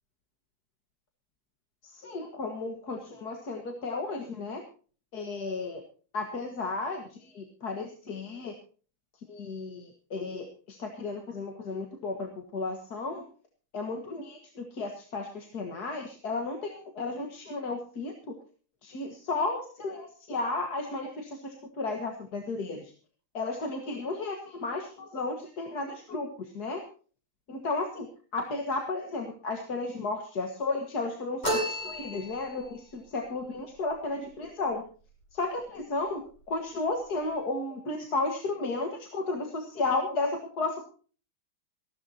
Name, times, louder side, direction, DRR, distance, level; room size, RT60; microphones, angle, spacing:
voice 1, 1.8-4.6 5.1-5.8 6.1-8.5 9.3-13.2 13.7-18.1 18.8-22.9 23.3-26.3 26.5-26.8 27.5-28.1 28.3-34.8 35.3-36.2 36.5-40.8, left 3 dB, 50° left, 3 dB, 2.3 m, -33 dB
sound 1, 31.4-32.7, equal, 30° left, 7.0 m, -31 dB
19.0 x 15.5 x 2.9 m, 0.40 s
omnidirectional pair, 2.3 m